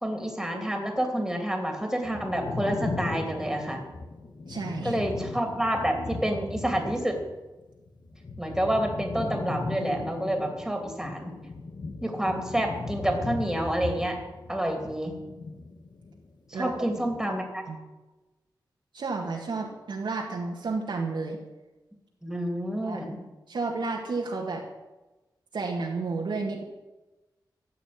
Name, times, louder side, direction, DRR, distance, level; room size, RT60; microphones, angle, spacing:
voice 1, 0.0-3.8 4.8-7.2 8.4-11.3 12.0-14.2 14.5-15.1 16.5-17.6 22.2-23.2, right 1 dB, 5° right, 3 dB, 2.7 m, -28 dB
sound 1, 2.0-7.3 7.6-16.2 16.5-17.2, left 3 dB, 65° left, 1.7 m, -37 dB
voice 2, 4.5-5.0 16.5-16.7 17.3-17.4 17.7-17.8 18.9-21.4 22.8-23.0 23.5-24.6 25.5-26.6, right 3 dB, 80° right, -1 dB, 1.9 m, -31 dB
13.5 x 7.7 x 9.5 m, 1.1 s
wide cardioid pair, 105°, 8 cm